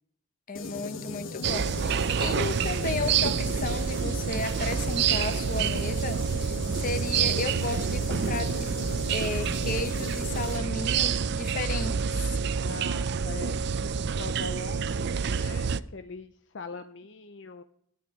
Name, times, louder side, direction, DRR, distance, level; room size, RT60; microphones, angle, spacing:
sound 1, 0.5-10.6, left 3 dB, 80° left, 1.2 m, -38 dB
voice 1, 0.5-6.5 6.8-12.4, left 3 dB, 40° left, 10 dB, 0.9 m, -34 dB
sound 2, 1.4-15.8, right 6 dB, 55° right, 0.4 m, -28 dB
voice 2, 12.6-17.6, left 4 dB, 60° left, 9 dB, 0.5 m, -42 dB
14.0 x 9.1 x 4.9 m, 0.68 s
head